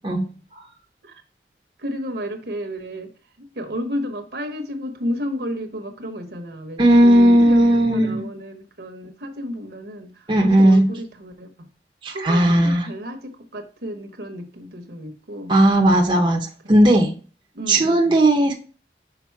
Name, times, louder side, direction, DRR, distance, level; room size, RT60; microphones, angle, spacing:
voice 1, 1.8-3.1 3.4-11.7 12.1-15.5 17.5-18.2, equal, 60° right, 6 dB, 1.1 m, -32 dB
voice 2, 6.8-8.2 10.3-10.8 12.0-12.9 15.5-17.1 17.7-18.5, right 1 dB, 25° right, 1 dB, 0.8 m, -16 dB
6.0 x 5.0 x 4.6 m, 0.38 s
head